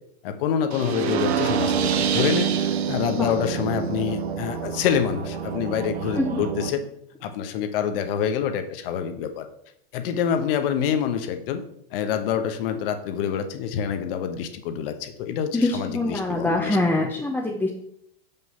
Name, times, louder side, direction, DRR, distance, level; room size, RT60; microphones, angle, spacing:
voice 1, 0.2-6.8 7.2-9.4 9.9-11.6 11.9-17.0, left 8 dB, 60° left, 8 dB, 1.2 m, -26 dB
sound 1, 0.7-6.7, right 7 dB, 85° right, 1.0 m, -26 dB
voice 2, 15.5-17.7, left 2 dB, 5° left, -2 dB, 0.7 m, -24 dB
6.2 x 5.5 x 5.5 m, 0.74 s
supercardioid pair, 135°, 31 cm